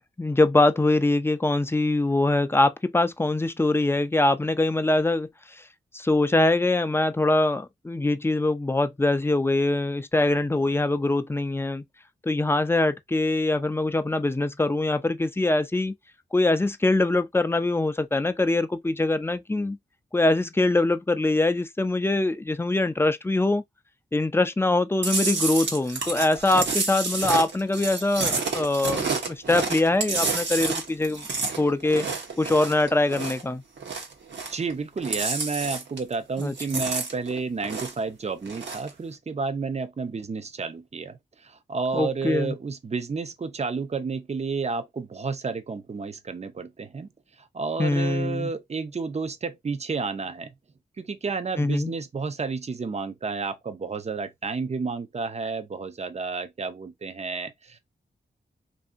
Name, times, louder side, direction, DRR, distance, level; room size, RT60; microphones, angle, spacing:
voice 1, 0.2-5.3 5.9-11.8 12.2-15.9 16.3-19.8 20.1-23.6 24.1-31.3 31.6-32.1 32.4-33.6 36.4-36.8 41.9-42.6 47.8-48.5 51.6-51.9, left 2 dB, 15° left, 0.4 m, -23 dB
Chewing mastication, 25.0-33.5 33.8-34.7 35.0-36.1 36.4-38.1 38.4-38.9, right 4 dB, 75° right, 0.9 m, -29 dB
voice 2, 34.5-47.1 47.5-50.5 51.0-57.8, right 4 dB, 35° right, 0.5 m, -31 dB
2.6 x 2.6 x 2.5 m
cardioid pair, 50°, 19 cm